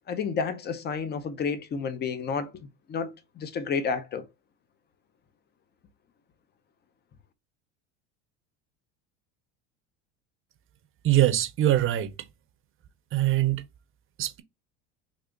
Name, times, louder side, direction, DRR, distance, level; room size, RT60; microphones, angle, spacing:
voice 1, 0.1-4.3, left 5 dB, 30° left, 0.7 m, -31 dB
voice 2, 11.0-12.1 13.1-13.6 14.2-14.4, right 13 dB, 35° right, 0.7 m, -23 dB
3.3 x 2.5 x 3.7 m
supercardioid pair, 100°, 36 cm